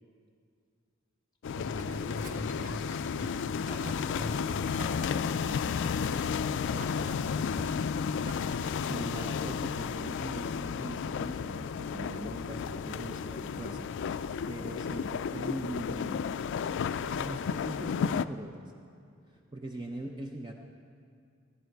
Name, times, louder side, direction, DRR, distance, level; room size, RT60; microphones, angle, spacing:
sound 1, 1.4-18.3, left 6 dB, 60° left, 0.3 m, -33 dB
voice 1, 1.5-5.0, equal, 20° left, 0 dB, 2.0 m, -42 dB
Boiling, 1.8-9.1, equal, 40° right, 1.3 m, -47 dB
voice 2, 8.8-14.1 14.5-16.3 16.8-18.6 19.5-20.5, right 1 dB, 20° right, 1 dB, 0.7 m, -41 dB
17.5 x 11.0 x 4.6 m, 2.3 s
head